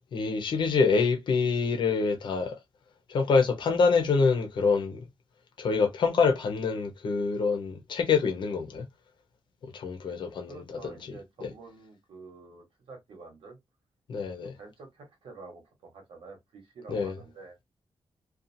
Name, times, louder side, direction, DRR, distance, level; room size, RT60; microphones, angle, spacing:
voice 1, 0.1-2.6 3.1-5.0 5.6-8.8 9.6-11.0 14.1-14.5 16.9-17.1, left 4 dB, 60° left, 0.7 m, -26 dB
voice 2, 10.5-13.6 14.4-17.5, right 3 dB, 85° right, 1.2 m, -48 dB
2.5 x 2.3 x 2.6 m
wide cardioid pair, 180°, 9 cm